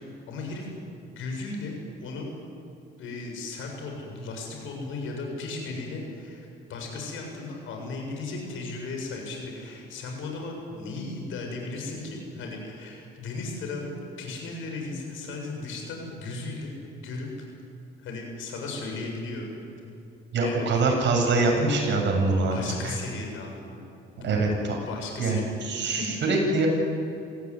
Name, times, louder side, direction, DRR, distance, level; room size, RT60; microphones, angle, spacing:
voice 1, 0.3-0.8 1.2-2.3 3.0-17.5 18.0-19.5 19.8-19.9 20.4-20.8 22.5-23.8 24.1-24.4 24.9-25.5 25.8-26.1, left 3 dB, 85° left, 1 dB, 7.3 m, -36 dB
voice 2, 20.3-22.6 22.8-23.0 24.2-24.7 25.2-26.7, right 3 dB, 65° right, 1 dB, 7.6 m, -24 dB
27.0 x 16.5 x 9.9 m, 2.7 s
cardioid pair, 90°, 20 cm